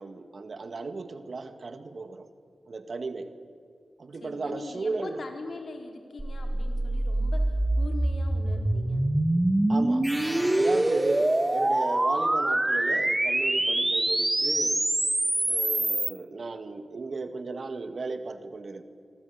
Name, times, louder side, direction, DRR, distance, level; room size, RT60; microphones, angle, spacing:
voice 1, 0.0-2.3 2.7-3.3 4.0-5.2 9.7-10.0 10.6-14.9 15.4-18.8, right 3 dB, 65° right, 9 dB, 1.9 m, -35 dB
voice 2, 4.1-9.0, left 3 dB, 70° left, 4 dB, 4.6 m, -42 dB
sound 1, 6.2-16.1, right 1 dB, 25° right, 2.2 m, -25 dB
sound 2, 10.0-11.9, equal, 10° right, 2.6 m, -38 dB
26.5 x 24.5 x 8.8 m, 2.2 s
cardioid pair, 45°, 0 cm